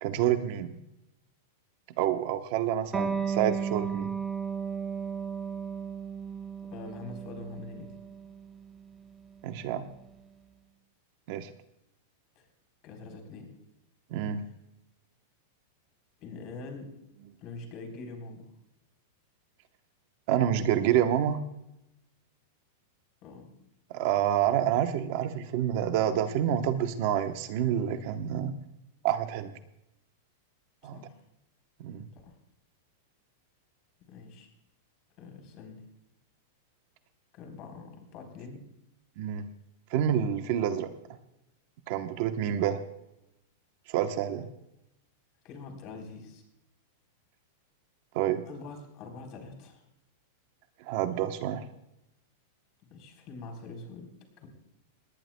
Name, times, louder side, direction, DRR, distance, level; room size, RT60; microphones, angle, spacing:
voice 1, 0.0-0.8 2.0-4.1 9.4-9.9 11.3-11.5 14.1-14.4 20.3-21.4 23.9-28.5 29.0-29.5 30.8-31.0 31.8-32.1 39.2-39.5 39.9-40.9 41.9-42.8 43.9-44.5 48.1-48.4 50.8-51.6, right 10 dB, 45° right, 8 dB, 0.9 m, -28 dB
Electric guitar, 2.9-10.1, right 6 dB, 10° right, 1.1 m, -35 dB
voice 2, 6.6-7.9 12.4-12.5 12.8-13.5 16.2-16.9 17.4-18.5 23.2-23.5 30.9-31.2 32.1-32.4 34.1-34.5 35.2-35.8 37.3-38.6 45.4-46.4 48.5-49.8 52.9-54.1 54.4-54.5, left 3 dB, 35° left, 3 dB, 3.7 m, -44 dB
20.5 x 19.0 x 2.2 m, 0.87 s
supercardioid pair, 165°, 0 cm